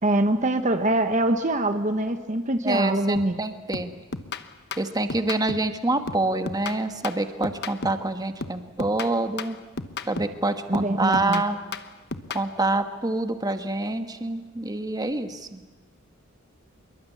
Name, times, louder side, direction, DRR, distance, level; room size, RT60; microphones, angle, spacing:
voice 1, 0.0-3.4 10.7-11.4, right 1 dB, 35° right, 7 dB, 1.2 m, -23 dB
voice 2, 2.6-3.9 4.8-9.6 10.1-11.6 12.3-15.6, right 2 dB, 20° right, 8 dB, 1.4 m, -26 dB
sound 1, 3.2-3.4 3.7-5.8 6.1-8.1 8.4-10.4 10.7-12.5, left 4 dB, 55° left, 1.2 m, -35 dB
26.0 x 22.5 x 8.5 m, 1.2 s
head